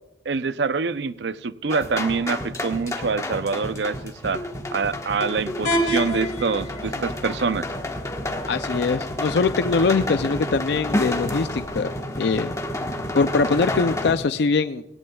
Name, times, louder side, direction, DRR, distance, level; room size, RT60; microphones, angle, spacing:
voice 1, 0.3-4.5 4.7-7.7, right 4 dB, 75° right, 14 dB, 0.5 m, -25 dB
sound 1, 1.7-14.1, left 1 dB, 20° left, 1.3 m, -30 dB
sound 2, 5.6-11.6, equal, 45° left, 2.8 m, -31 dB
voice 2, 8.5-12.5 13.1-14.8, left 4 dB, 70° left, 11 dB, 0.4 m, -22 dB
18.5 x 17.0 x 2.3 m, 0.95 s
head